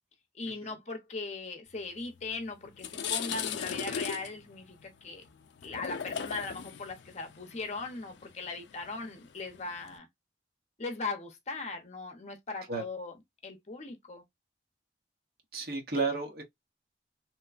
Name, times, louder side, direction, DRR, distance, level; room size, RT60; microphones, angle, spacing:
voice 1, 0.3-5.2 5.6-10.1 10.8-14.2, left 3 dB, 40° left, 0.7 m, -39 dB
sound 1, 2.2-2.3 2.7-10.0, left 7 dB, 80° left, 0.4 m, -38 dB
voice 2, 15.5-16.4, right 4 dB, 55° right, 0.9 m, -31 dB
3.0 x 2.1 x 2.4 m
head